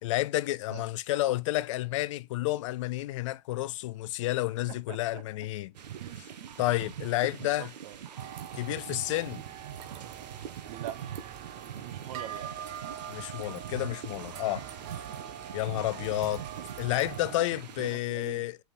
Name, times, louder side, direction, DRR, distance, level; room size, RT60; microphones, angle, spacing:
voice 1, 0.0-5.7 6.6-7.7 8.5-9.4 13.1-14.7 15.5-16.4 16.8-18.6, left 16 dB, 50° left, 0.5 m, -30 dB
voice 2, 4.7-5.2 5.9-6.2 7.6-8.0 10.7-11.1 11.8-12.5 16.0-16.1 16.6-16.7 17.8-18.5, right 13 dB, 55° right, 1.2 m, -43 dB
sound 1, 5.7-17.9, right 9 dB, 80° right, 1.4 m, -43 dB
sound 2, 8.2-17.4, right 9 dB, 35° right, 1.3 m, -43 dB
5.8 x 5.7 x 5.9 m
hypercardioid pair, 145°, 21 cm